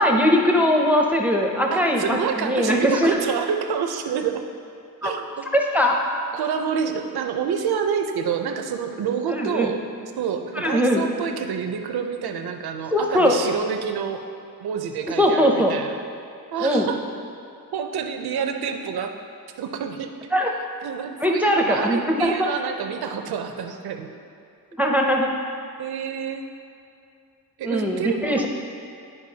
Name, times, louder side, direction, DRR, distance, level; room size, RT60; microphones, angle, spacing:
voice 1, 0.0-3.2 5.0-5.1 5.5-6.0 9.3-9.7 10.6-11.0 12.9-13.3 15.2-15.7 16.6-16.9 20.3-20.5 21.2-22.5 24.8-25.3 27.6-28.5, equal, 5° right, 1 dB, 0.5 m, -20 dB
voice 2, 1.7-4.4 5.0-5.5 6.3-9.8 10.2-14.2 14.6-16.0 16.5-17.0 17.7-19.1 19.6-20.1 20.8-24.1 25.8-26.5 27.6-28.5, right 7 dB, 85° right, 6 dB, 0.6 m, -28 dB
11.0 x 4.7 x 2.8 m, 2.5 s
wide cardioid pair, 110°, 37 cm